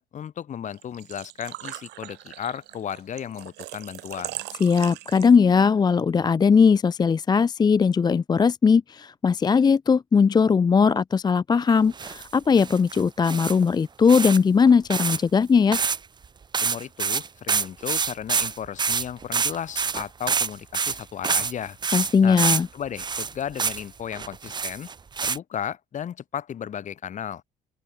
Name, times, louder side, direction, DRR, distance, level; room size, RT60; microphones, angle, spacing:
voice 1, 0.0-4.4 16.6-21.8 22.2-22.4 22.7-24.9 25.2-27.4, left 9 dB, 45° left, 1.7 m, -34 dB
Engine / Trickle dribble / Fill (with liquid), 0.7-5.6, right 19 dB, 90° right, 3.6 m, -40 dB
voice 2, 4.6-15.8 21.9-22.7, left 5 dB, 25° left, 0.5 m, -19 dB
sound 1, 11.9-12.3 12.6-13.6 14.1-14.4 14.7-15.2 15.7-16.0 16.2-16.3 16.5-21.5 21.8-22.6 23.0-23.8 24.1-25.4, right 5 dB, 25° right, 0.8 m, -26 dB
open air
cardioid pair, 110°, 17 cm